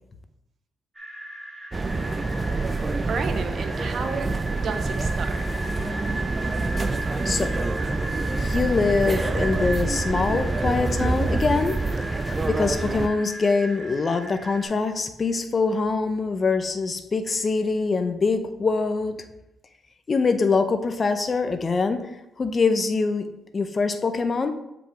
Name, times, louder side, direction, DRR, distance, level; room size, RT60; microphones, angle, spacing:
sound 1, 0.9-14.7, right 1 dB, 10° right, 1.9 m, -36 dB
sound 2, 1.7-13.1, right 3 dB, 25° right, 0.4 m, -26 dB
voice 1, 3.1-5.4, right 5 dB, 55° right, 7 dB, 0.9 m, -32 dB
voice 2, 8.3-11.8 12.4-19.2 20.1-22.1 22.4-24.6, left 4 dB, 35° left, 8 dB, 0.7 m, -24 dB
7.4 x 5.1 x 3.5 m, 0.88 s
cardioid pair, 90°, 0 cm